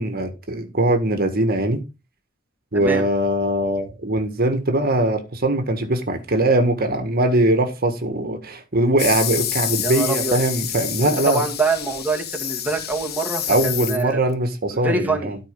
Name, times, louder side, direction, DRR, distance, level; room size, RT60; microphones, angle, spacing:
voice 1, 0.0-1.8 2.7-11.4 13.5-15.4, right 1 dB, 50° right, 1.6 m, -21 dB
voice 2, 2.7-3.1 9.8-10.4 11.0-14.2 14.7-15.4, right 3 dB, 10° right, 2.2 m, -25 dB
sound 1, 9.0-14.3, left 10 dB, 55° left, 1.2 m, -28 dB
13.0 x 5.0 x 5.2 m
head